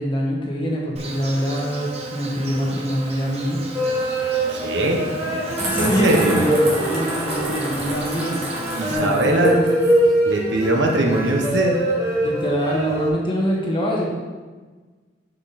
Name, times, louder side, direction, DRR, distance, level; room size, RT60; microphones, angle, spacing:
voice 1, 0.0-3.6 5.6-8.4 8.9-9.8 12.2-14.1, equal, 30° left, -2 dB, 1.4 m, -24 dB
Insect, 1.0-9.0, right 2 dB, 35° right, 0.8 m, -34 dB
sound 1, 3.7-13.1, right 1 dB, 15° right, 1.3 m, -24 dB
voice 2, 4.5-5.1 5.8-6.5 8.7-9.6 10.2-11.8, right 1 dB, 85° right, 1 dB, 1.1 m, -21 dB
sound 2, 5.6-10.0, right 1 dB, 65° right, 2.3 m, -30 dB
6.1 x 5.5 x 4.2 m, 1.4 s
head